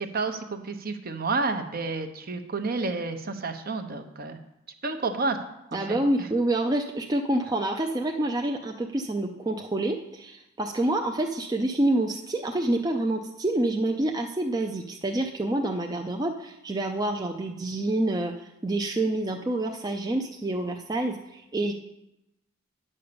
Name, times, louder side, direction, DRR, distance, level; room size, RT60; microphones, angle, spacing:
voice 1, 0.0-4.4 4.8-5.4 5.9-6.3, right 3 dB, 45° right, 7 dB, 0.8 m, -30 dB
voice 2, 5.7-18.3 18.6-21.7, right 1 dB, 20° right, 2 dB, 0.5 m, -27 dB
9.6 x 5.4 x 6.9 m, 0.88 s
head